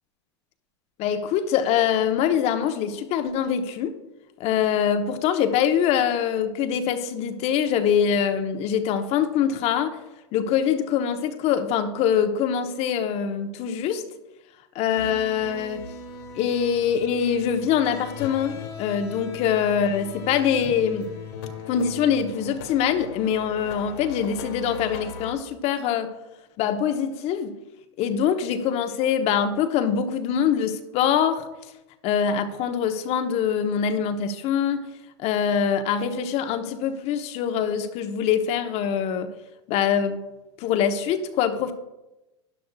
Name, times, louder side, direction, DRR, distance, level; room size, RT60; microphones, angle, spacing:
voice 1, 1.0-4.0 4.4-10.0 10.3-14.0 14.7-15.9 16.3-21.1 21.7-26.1 26.6-27.5 28.0-31.4 32.0-34.9 35.2-39.3 39.7-40.3 40.6-41.7, left 8 dB, 45° left, 8 dB, 1.0 m, -24 dB
sound 1, 14.9-25.3, left 5 dB, 65° left, 1.9 m, -39 dB
12.5 x 9.9 x 2.4 m, 1.0 s
hypercardioid pair, 95°, 15 cm